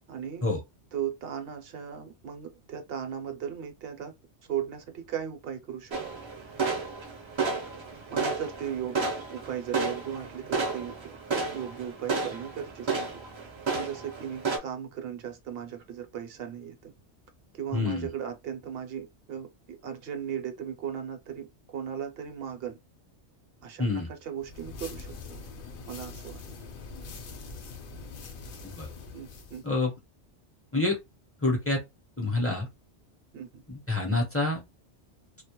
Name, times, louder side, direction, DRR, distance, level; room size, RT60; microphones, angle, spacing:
voice 1, 0.1-0.5 0.9-4.1 4.5-6.0 8.1-9.0 9.3-11.2 11.5-13.1 13.7-16.9 17.5-22.8 23.6-25.4 25.9-26.4 29.1-29.6 33.3-33.6, right 9 dB, 65° right, 0.7 m, -37 dB
sound 1, 5.9-14.6, right 4 dB, 40° right, 0.4 m, -32 dB
voice 2, 17.7-18.1 23.8-24.1 28.6-28.9 29.6-29.9 30.7-31.0 31.4-31.8 32.2-32.7 33.7-34.6, left 2 dB, 20° left, 0.4 m, -27 dB
sound 2, 24.4-29.7, left 4 dB, 60° left, 0.7 m, -43 dB
2.2 x 2.0 x 2.9 m
omnidirectional pair, 1.2 m